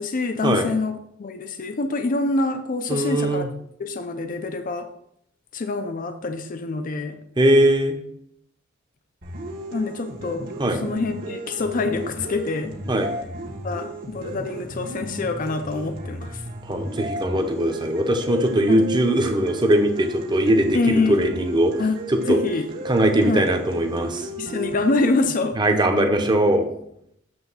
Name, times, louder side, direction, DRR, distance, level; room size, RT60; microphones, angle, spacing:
voice 1, 0.0-3.5 3.8-4.9 5.5-7.2 9.7-12.8 13.6-16.4 18.7-18.9 20.7-21.3 21.8-22.0 22.3-22.7 23.3-23.5 24.4-25.6, left 3 dB, 45° left, 7 dB, 0.5 m, -25 dB
voice 2, 2.9-3.5 7.4-8.0 10.6-10.8 12.9-13.1 16.7-21.7 22.1-22.4 22.8-24.3 25.6-26.7, right 1 dB, 25° right, 5 dB, 0.8 m, -20 dB
sound 1, 9.2-25.2, right 1 dB, 55° right, 1.4 m, -34 dB
7.9 x 3.4 x 5.5 m, 0.74 s
head